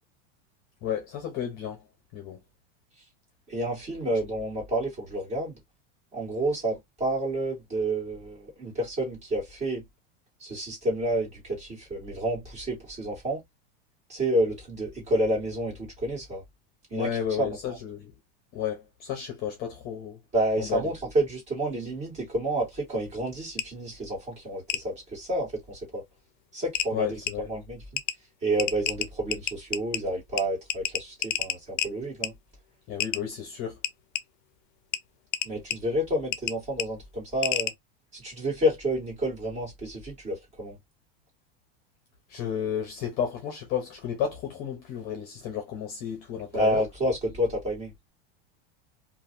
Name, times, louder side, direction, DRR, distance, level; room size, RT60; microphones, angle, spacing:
voice 1, 0.8-1.8 2.1-2.4 4.1-4.2 16.9-18.1 18.5-20.2 20.6-20.8 26.9-27.5 32.9-33.8 42.3-46.8, left 8 dB, 30° left, 0.8 m, -32 dB
voice 2, 3.5-5.6 6.1-9.9 10.4-13.4 14.1-16.4 16.9-17.1 17.4-17.8 20.3-26.0 26.5-27.2 27.5-27.8 28.4-32.3 35.4-37.7 38.1-40.8 46.5-47.9, right 1 dB, 20° right, 2.0 m, -29 dB
sound 1, 23.6-23.7 24.7-24.8 26.2-26.3 26.7-26.9 27.3-27.4 28.0-28.1 28.6-30.0 30.4-30.5 30.7-31.9 32.2-32.3 33.0-33.2 33.8-34.2 34.9-35.0 35.3-35.8 36.3-36.5 36.8-36.9 37.4-37.7, left 11 dB, 55° left, 0.5 m, -28 dB
3.1 x 2.5 x 2.6 m
supercardioid pair, 170°, 31 cm